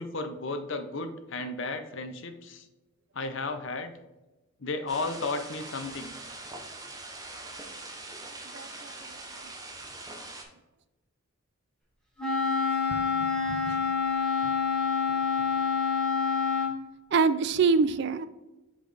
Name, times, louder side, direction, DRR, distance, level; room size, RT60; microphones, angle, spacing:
voice 1, 0.0-2.7 3.1-3.9 4.6-6.1 14.4-14.5, left 3 dB, 60° left, 0.7 m, -34 dB
sound 1, 4.9-10.4, right 2 dB, 15° right, 0.8 m, -42 dB
voice 2, 8.5-9.2 12.9-13.8 17.1-18.3, right 5 dB, 50° right, 0.3 m, -27 dB
Wind instrument woodwind instrument, 12.2-16.8, left 5 dB, 5° left, 1.5 m, -27 dB
6.0 x 5.0 x 3.4 m
head